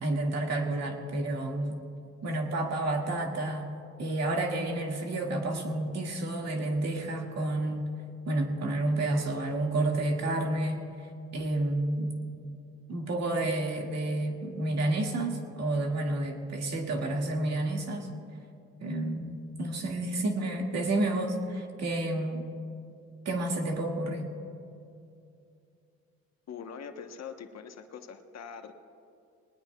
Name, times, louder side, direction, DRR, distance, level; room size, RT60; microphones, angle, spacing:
voice 1, 0.0-1.8 2.2-3.7 4.0-7.9 8.3-10.8 11.3-12.2 12.9-18.1 18.8-22.5 23.3-24.3, right 2 dB, 60° right, 1 dB, 2.0 m, -30 dB
voice 2, 26.5-28.7, left 6 dB, 60° left, 6 dB, 1.1 m, -43 dB
21.0 x 19.5 x 2.3 m, 2.5 s
cardioid pair, 90°, 30 cm